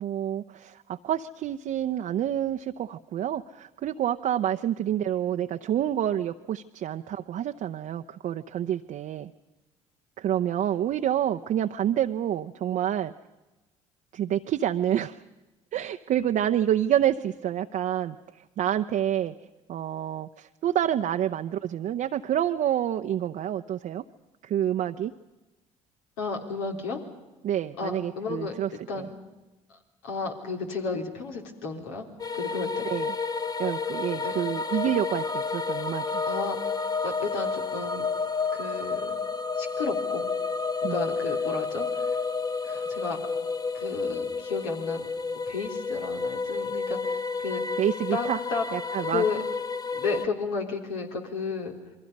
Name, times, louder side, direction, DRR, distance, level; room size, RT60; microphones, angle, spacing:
voice 1, 0.0-9.3 10.2-13.1 14.1-15.2 15.7-18.2 18.6-19.3 19.7-24.0 24.4-25.1 27.4-28.7 28.9-29.0 32.8-33.1 33.6-36.2 40.8-41.0 47.8-48.4 48.7-49.2, right 11 dB, 55° right, 5 dB, 0.8 m, -28 dB
voice 2, 26.2-27.0 27.8-28.5 28.9-29.2 30.0-32.1 32.3-32.9 34.1-34.4 36.3-36.7 37.0-38.1 38.5-39.2 39.6-40.3 40.8-42.2 42.6-43.2 43.7-45.1 45.5-47.8 48.1-48.6 49.0-49.4 49.9-51.8, left 4 dB, 80° left, 2 dB, 3.5 m, -33 dB
sound 1, 32.2-50.2, left 4 dB, 25° left, 1.0 m, -30 dB
28.5 x 22.5 x 5.4 m, 1.1 s
hypercardioid pair, 60°, 16 cm